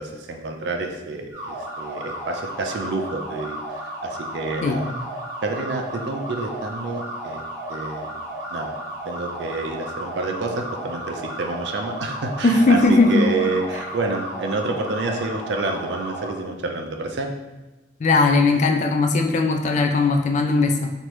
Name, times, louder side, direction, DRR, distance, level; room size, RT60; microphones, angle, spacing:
voice 1, 0.0-4.9 5.4-7.4 7.7-8.2 8.5-8.7 9.1-17.3, right 3 dB, 65° right, 3 dB, 0.4 m, -28 dB
sound 1, 1.3-16.3, right 1 dB, 20° right, 1.0 m, -33 dB
voice 2, 12.4-13.3 18.0-20.9, left 3 dB, 40° left, 4 dB, 0.3 m, -18 dB
3.0 x 2.5 x 3.1 m, 1.1 s
head